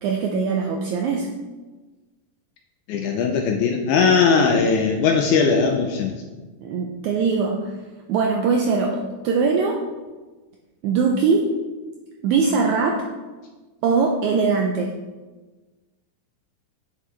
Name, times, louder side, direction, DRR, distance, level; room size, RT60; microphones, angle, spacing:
voice 1, 0.0-1.3 6.6-7.7 8.1-9.8 10.8-11.5 12.2-13.0 13.8-14.9, right 5 dB, 80° right, 1 dB, 1.8 m, -21 dB
voice 2, 2.9-6.1, left 5 dB, 80° left, 3 dB, 1.8 m, -19 dB
9.2 x 6.9 x 3.3 m, 1.3 s
omnidirectional pair, 4.0 m